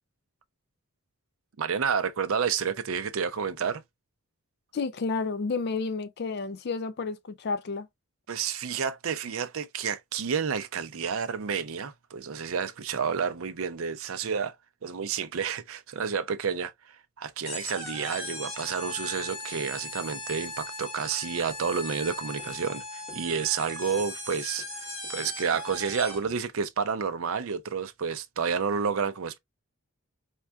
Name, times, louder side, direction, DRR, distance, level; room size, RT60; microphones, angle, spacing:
voice 1, 1.6-3.8 8.3-14.5 14.8-16.7 17.2-24.6 25.1-29.4, right 6 dB, 65° right, 0.5 m, -30 dB
voice 2, 4.7-7.9, left 4 dB, 45° left, 0.4 m, -31 dB
sound 1, 17.4-26.4, left 1 dB, 25° left, 1.1 m, -38 dB
4.3 x 2.4 x 2.3 m
head